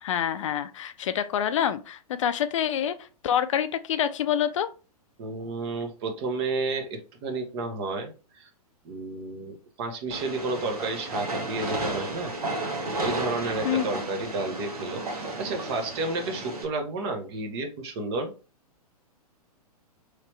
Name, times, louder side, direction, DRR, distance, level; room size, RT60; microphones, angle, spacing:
voice 1, 0.0-4.7 13.6-13.9, left 9 dB, 55° left, 0.4 m, -27 dB
voice 2, 5.2-8.5 8.8-12.3 13.0-18.3, right 3 dB, 40° right, 0.9 m, -31 dB
Train, 10.1-16.6, right 2 dB, 70° right, 1.0 m, -33 dB
3.2 x 2.9 x 3.1 m
figure-of-eight pair, 110°, 20 cm